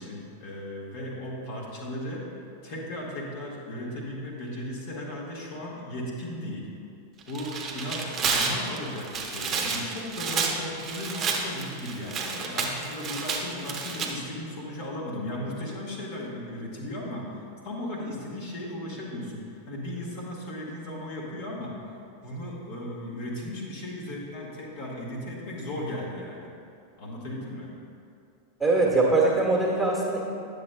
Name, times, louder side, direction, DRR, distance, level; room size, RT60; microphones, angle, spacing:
voice 1, 0.0-2.3 2.6-6.7 7.3-21.7 22.2-26.5 27.0-27.7, left 1 dB, 50° left, -4 dB, 1.3 m, -36 dB
Tearing, 7.2-14.1, right 4 dB, 25° right, 0.8 m, -30 dB
voice 2, 28.6-30.2, right 3 dB, ahead, -4 dB, 1.4 m, -22 dB
9.6 x 6.8 x 2.2 m, 2.5 s
figure-of-eight pair, 90°, 0 cm